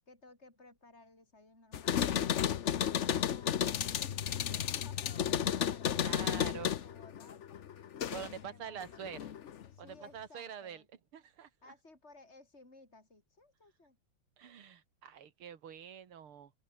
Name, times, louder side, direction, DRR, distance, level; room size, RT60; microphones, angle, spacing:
voice 1, 0.1-7.6 8.2-9.4 9.7-10.9 11.6-14.0, left 2 dB, 30° left, 6.8 m, -58 dB
sound 1, 1.7-8.4 8.8-9.6, left 9 dB, 80° left, 0.6 m, -33 dB
voice 2, 6.0-6.7 8.1-9.3 9.8-10.8 11.1-11.5 14.4-16.5, right 8 dB, 75° right, 2.8 m, -46 dB
open air
omnidirectional pair, 2.4 m